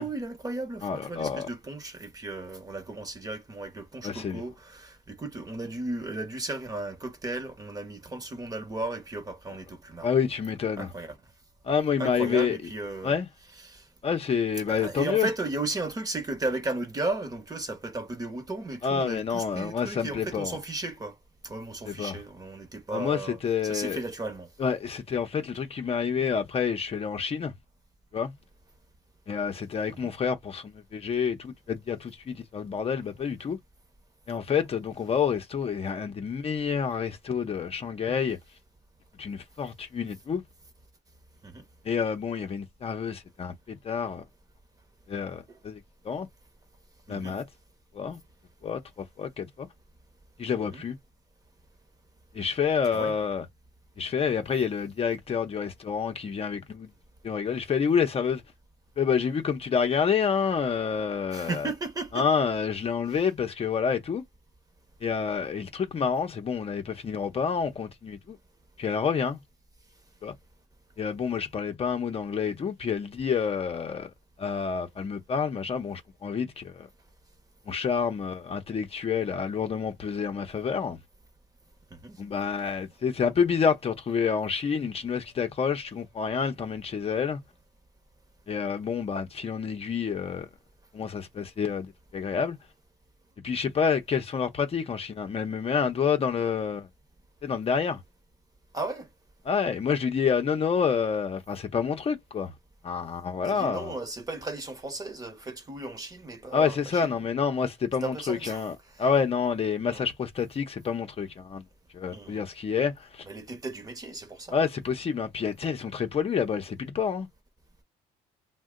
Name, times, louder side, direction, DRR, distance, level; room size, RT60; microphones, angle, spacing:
voice 1, 0.0-10.1 10.8-11.2 12.0-13.2 13.6-13.8 14.7-21.2 21.4-24.5 29.9-30.1 41.4-41.6 45.5-45.6 47.1-47.4 50.6-50.8 52.9-53.1 61.3-62.3 81.9-82.2 98.7-99.1 103.4-107.1 108.0-108.7 108.9-109.1 109.9-110.1 112.1-112.4 113.3-114.6, right 2 dB, 20° right, 0.9 m, -35 dB
voice 2, 0.8-1.5 4.0-4.4 10.0-10.9 11.6-12.6 13.0-13.3 14.0-15.3 18.8-20.5 21.9-22.2 22.9-24.0 24.6-27.5 28.1-28.3 29.3-33.6 34.3-38.4 39.2-40.4 41.8-44.2 45.1-46.3 47.1-47.4 47.9-48.2 48.6-49.7 50.4-51.0 52.3-53.4 54.0-56.9 57.2-58.4 59.0-61.7 62.1-64.2 65.0-68.4 68.8-69.4 70.2-70.3 71.0-74.1 74.4-76.9 77.7-81.0 82.2-87.4 88.5-90.5 90.9-92.6 93.4-96.9 97.4-98.0 99.5-102.5 102.8-103.9 106.5-111.6 111.9-113.2 114.5-117.3, left 6 dB, 35° left, 0.7 m, -28 dB
2.7 x 2.2 x 3.7 m
cardioid pair, 110°, 17 cm